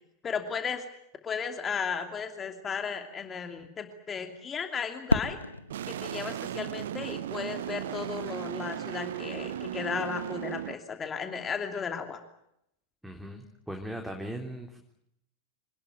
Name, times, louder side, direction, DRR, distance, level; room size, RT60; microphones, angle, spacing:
voice 1, 0.2-0.8 1.2-5.4 5.9-12.2, left 6 dB, 20° left, 6 dB, 2.8 m, -35 dB
Fireworks, 5.1-8.0, left 1 dB, 85° left, 1.3 m, -33 dB
sound 1, 5.7-10.7, right 11 dB, 60° right, 1.0 m, -36 dB
voice 2, 13.0-14.9, right 1 dB, 5° right, 3 dB, 3.6 m, -39 dB
27.0 x 19.5 x 9.2 m, 0.78 s
figure-of-eight pair, 90°, 0 cm